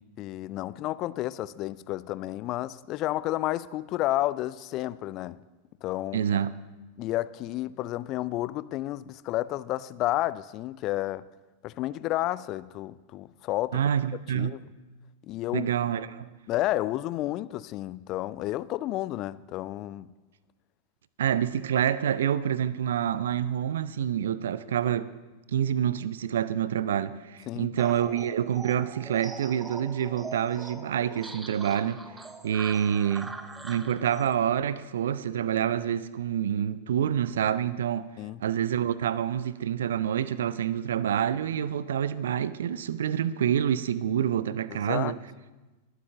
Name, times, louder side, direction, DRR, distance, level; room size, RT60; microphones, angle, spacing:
voice 1, 0.2-5.4 5.8-6.2 7.0-11.3 11.6-13.8 14.3-14.6 15.2-15.7 16.5-20.1 27.5-27.7 38.2-38.4 44.9-45.1, left 15 dB, 40° left, 0.3 m, -31 dB
voice 2, 6.1-6.5 13.7-14.6 15.5-16.3 21.2-25.1 25.5-32.0 32.4-33.3 33.6-38.1 38.4-45.2, right 9 dB, 60° right, 0.4 m, -27 dB
sound 1, 27.8-34.4, right 3 dB, 10° right, 0.7 m, -42 dB
20.5 x 8.1 x 3.7 m
figure-of-eight pair, 90°, 0 cm